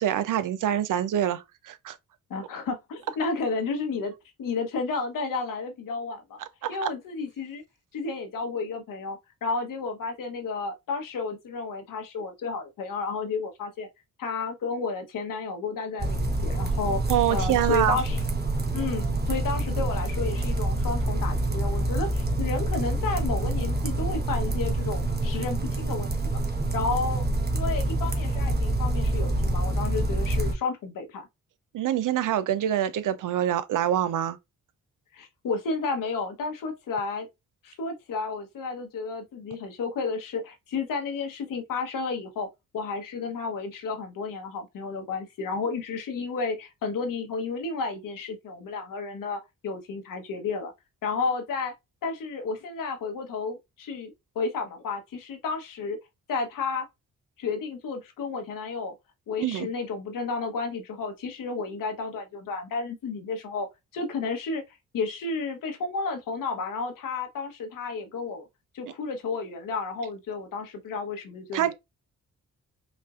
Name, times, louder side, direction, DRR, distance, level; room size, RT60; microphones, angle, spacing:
voice 1, 0.0-2.0 6.6-6.9 17.1-18.0 31.7-34.4 59.4-59.7 71.5-71.7, right 11 dB, 70° right, 0.6 m, -25 dB
voice 2, 2.3-4.1 4.4-6.4 6.7-7.6 7.9-13.9 14.2-17.0 17.3-18.2 18.7-26.4 26.7-27.2 27.5-31.3 35.1-37.3 37.6-42.5 42.7-50.7 51.0-51.7 52.0-56.0 56.3-56.9 57.4-58.9 59.3-63.7 63.9-64.6 64.9-68.4 68.7-71.7, left 4 dB, 75° left, 1.1 m, -32 dB
sound 1, 16.0-30.5, right 2 dB, 30° right, 1.1 m, -27 dB
5.1 x 2.6 x 2.4 m
supercardioid pair, 55°, 33 cm